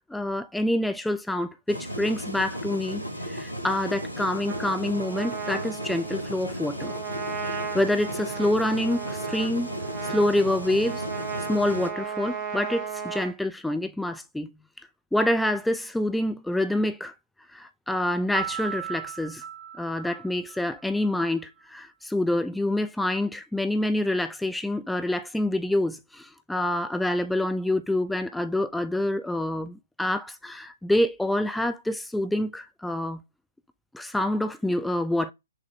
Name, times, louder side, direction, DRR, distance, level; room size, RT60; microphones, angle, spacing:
voice 1, 0.0-6.9 7.7-9.7 10.1-11.0 11.5-14.5 15.1-17.1 17.5-19.4 19.8-33.2 33.9-35.3, left 1 dB, 5° left, 0.4 m, -27 dB
sound 1, 1.7-11.9, equal, 90° left, 1.6 m, -35 dB
Trumpet, 4.4-13.3, right 6 dB, 25° right, 1.2 m, -36 dB
Piano, 18.3-21.1, right 8 dB, 45° right, 1.7 m, -36 dB
6.4 x 2.5 x 2.8 m
figure-of-eight pair, 125°, 0 cm